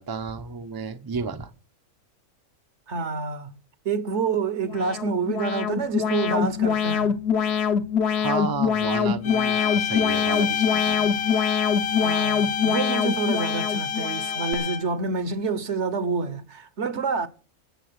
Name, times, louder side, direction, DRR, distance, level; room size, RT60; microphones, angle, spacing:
voice 1, 0.0-1.5 8.2-11.1, right 4 dB, 25° right, 0.6 m, -32 dB
voice 2, 2.9-3.5 3.8-7.2 12.0-17.3, right 4 dB, 55° right, 1.2 m, -27 dB
Alarm, 4.6-14.5, left 7 dB, 50° left, 1.1 m, -24 dB
sound 1, 9.2-15.0, left 7 dB, 80° left, 1.3 m, -28 dB
15.5 x 7.1 x 6.5 m
omnidirectional pair, 1.5 m